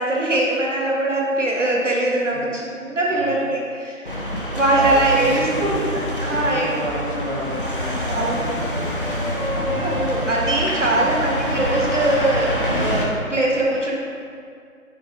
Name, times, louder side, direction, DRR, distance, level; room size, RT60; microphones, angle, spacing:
voice 1, 0.0-4.0 4.5-5.8 6.2-6.7 8.1-8.4 9.5-14.0, right 2 dB, 55° right, -3 dB, 1.4 m, -21 dB
voice 2, 3.1-3.5 4.7-5.8 6.2-9.6, right 1 dB, 35° right, -7 dB, 1.4 m, -31 dB
sound 1, 4.0-13.0, equal, 40° left, 0.7 m, -26 dB
sound 2, 4.1-11.2 11.5-12.0, left 1 dB, 85° left, 0.9 m, -36 dB
8.6 x 3.2 x 3.8 m, 2.2 s
figure-of-eight pair, 165°, 43 cm